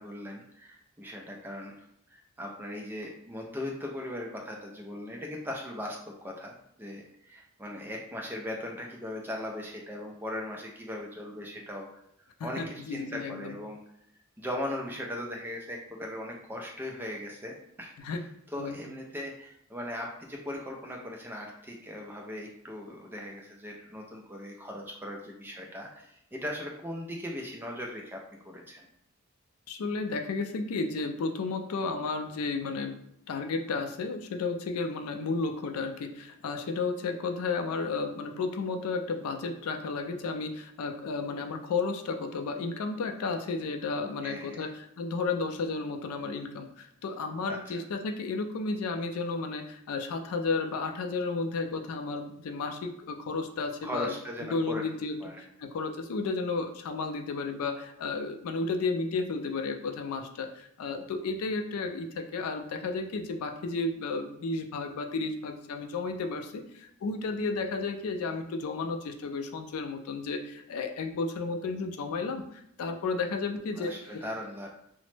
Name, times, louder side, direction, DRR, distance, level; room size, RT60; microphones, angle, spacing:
voice 1, 0.0-1.8 2.1-11.9 12.4-13.8 14.4-18.1 18.5-28.2 28.4-28.9 44.2-44.7 47.5-47.8 53.8-54.8 55.2-55.4 73.7-74.7, left 1 dB, 10° right, 0 dB, 0.3 m, -39 dB
voice 2, 12.4-13.6 18.0-18.2 18.6-18.8 29.7-33.0 33.3-54.1 54.4-55.2 55.6-73.9, left 4 dB, 80° left, 6 dB, 0.4 m, -33 dB
2.9 x 2.0 x 3.1 m, 0.74 s
head